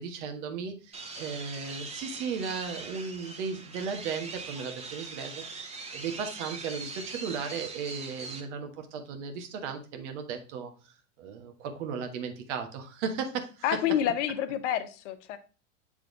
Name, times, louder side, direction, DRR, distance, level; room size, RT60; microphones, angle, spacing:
voice 1, 0.0-13.6, right 6 dB, 65° right, 6 dB, 1.4 m, -36 dB
sound 1, 0.9-8.4, right 3 dB, 15° right, 1.1 m, -41 dB
voice 2, 13.6-15.4, left 10 dB, 65° left, 10 dB, 0.9 m, -28 dB
7.4 x 3.5 x 3.9 m, 0.34 s
hypercardioid pair, 100°, 38 cm